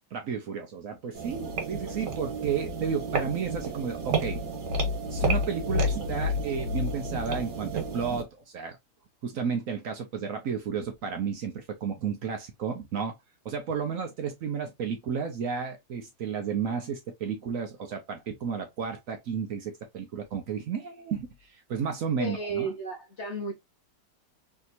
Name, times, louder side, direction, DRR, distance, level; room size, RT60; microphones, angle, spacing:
voice 1, 0.1-4.5 5.1-8.8 9.2-13.2 13.4-22.7, right 6 dB, 65° right, 0.9 m, -32 dB
sound 1, 1.1-8.2, equal, 90° right, 1.7 m, -30 dB
voice 2, 22.2-23.6, right 3 dB, 50° left, 0.9 m, -33 dB
3.4 x 2.8 x 2.5 m
omnidirectional pair, 1.8 m